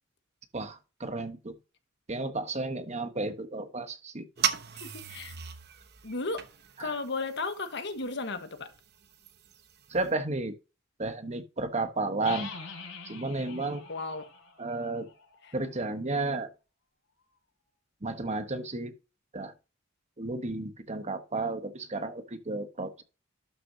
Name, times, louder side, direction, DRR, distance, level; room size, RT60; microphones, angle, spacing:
voice 1, 0.5-1.5 2.1-4.3 6.8-6.9 9.9-10.5 11.0-12.5 13.0-13.8 14.6-15.1 15.5-16.5 18.0-18.9 19.3-19.5 20.2-23.0, right 2 dB, 35° right, 1.2 m, -32 dB
sound 1, 4.4-10.1, right 9 dB, 55° right, 1.0 m, -38 dB
voice 2, 4.8-5.3 6.0-6.4 6.8-8.7 13.9-14.2 15.4-15.5, left 3 dB, 60° left, 1.4 m, -34 dB
sound 2, 12.2-15.9, left 4 dB, 90° left, 4.3 m, -45 dB
12.0 x 6.4 x 2.8 m
head